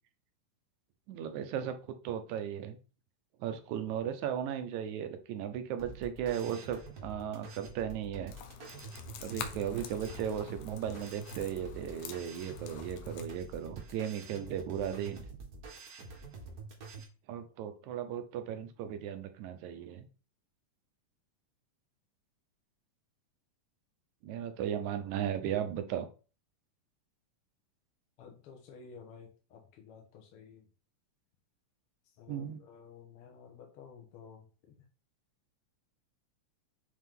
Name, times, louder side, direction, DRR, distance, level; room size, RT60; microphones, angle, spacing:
voice 1, 1.1-2.8 3.4-8.3 9.2-15.2 17.3-20.1 24.2-26.1 32.3-32.6, right 9 dB, 75° right, 8 dB, 2.0 m, -36 dB
sound 1, 5.8-17.0, right 3 dB, 55° right, 1.1 m, -47 dB
sound 2, 8.3-13.3, left 8 dB, 80° left, 2.2 m, -46 dB
voice 2, 28.2-30.7 32.1-34.7, left 6 dB, 60° left, 1 dB, 1.6 m, -53 dB
7.5 x 3.5 x 3.6 m, 0.36 s
omnidirectional pair, 3.6 m